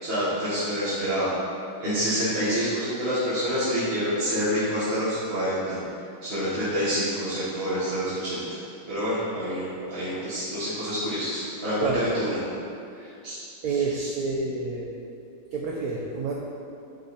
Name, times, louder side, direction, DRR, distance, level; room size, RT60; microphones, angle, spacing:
voice 1, 0.0-1.3 1.8-5.8 6.2-8.4 8.8-12.4 13.0-13.4 13.9-14.1, equal, 30° right, -12 dB, 1.5 m, -27 dB
voice 2, 11.8-12.2 13.6-14.9 15.5-16.3, right 4 dB, 70° right, -2 dB, 0.9 m, -29 dB
9.4 x 3.9 x 4.1 m, 2.6 s
omnidirectional pair, 2.2 m